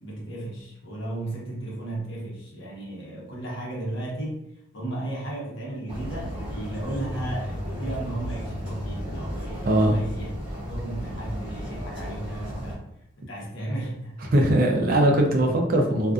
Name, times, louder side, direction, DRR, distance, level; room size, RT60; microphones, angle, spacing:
voice 1, 0.0-4.4 4.7-10.3 10.7-12.8 13.2-14.7 15.4-15.5, right 1 dB, 70° left, -4 dB, 0.9 m, -34 dB
sound 1, 5.9-12.8, equal, 25° right, 1.0 m, -34 dB
voice 2, 9.7-10.0 14.3-16.1, right 1 dB, 45° right, 2 dB, 0.4 m, -20 dB
2.4 x 2.4 x 2.3 m, 0.77 s
head